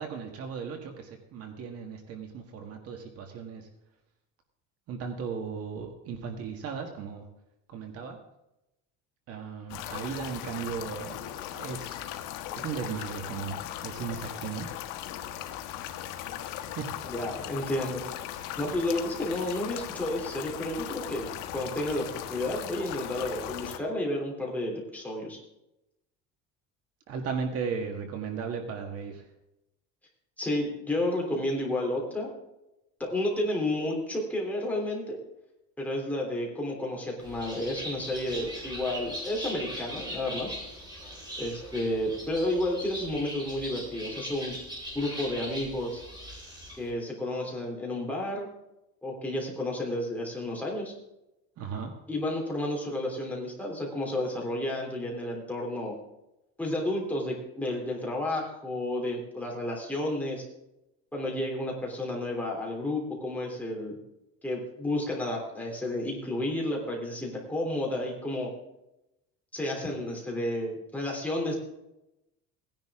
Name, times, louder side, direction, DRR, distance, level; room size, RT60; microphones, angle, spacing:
voice 1, 0.0-3.7 4.9-7.2 7.7-8.2 9.3-11.2 11.5-12.1 12.6-14.7 16.7-17.0 27.1-29.2 51.6-51.9, right 6 dB, 50° right, 4 dB, 1.8 m, -36 dB
sound 1, 9.7-23.8, left 11 dB, 85° left, 1.3 m, -38 dB
voice 2, 17.0-18.0 18.3-21.3 21.5-25.4 30.4-32.3 33.0-35.2 35.8-40.5 41.4-44.6 44.9-46.0 46.8-48.5 49.0-50.9 52.1-55.9 56.6-60.4 61.1-64.0 64.4-68.5 69.5-71.6, left 1 dB, 5° left, -2 dB, 3.4 m, -31 dB
Bird, 37.2-46.9, equal, 15° right, 5.4 m, -40 dB
17.5 x 10.5 x 3.7 m, 0.90 s
cardioid pair, 160°, 31 cm